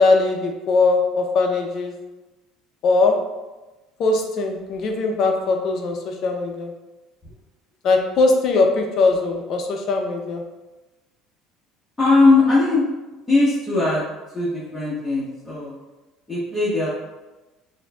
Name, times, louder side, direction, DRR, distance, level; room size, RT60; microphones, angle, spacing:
voice 1, 0.0-1.9 2.8-3.2 4.0-6.7 7.8-10.4, left 3 dB, 45° left, 2 dB, 0.5 m, -20 dB
voice 2, 12.0-12.8 13.3-14.0 14.3-15.8 16.3-16.9, left 3 dB, 10° left, -10 dB, 1.0 m, -19 dB
6.2 x 2.6 x 2.3 m, 1.1 s
cardioid pair, 150°, 0 cm